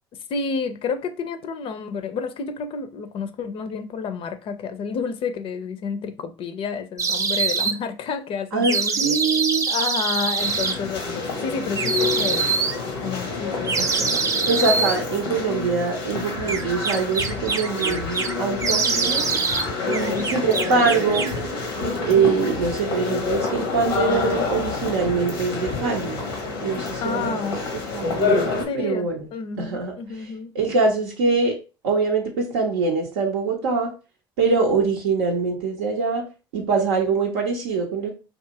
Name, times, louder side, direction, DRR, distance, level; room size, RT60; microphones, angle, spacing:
voice 1, 0.3-9.1 9.7-12.4 13.0-13.8 19.9-20.4 27.0-27.6 28.7-29.0 29.3-30.5, left 5 dB, 50° left, 0.4 m, -30 dB
sound 1, 7.0-7.7 8.6-10.8 11.8-12.8 13.6-15.0 16.5-18.3 18.6-19.7 19.9-21.4, right 5 dB, 25° right, 0.4 m, -24 dB
voice 2, 8.5-9.6 13.8-19.2 19.8-21.3 22.0-26.2 26.6-27.4 27.9-29.3 29.6-30.3 30.5-31.5 31.8-33.9 34.4-36.2 36.5-38.1, right 4 dB, 80° right, 0.5 m, -23 dB
sound 2, 10.4-28.6, left 4 dB, 85° left, 0.7 m, -28 dB
2.6 x 2.3 x 2.6 m
hypercardioid pair, 60°, 12 cm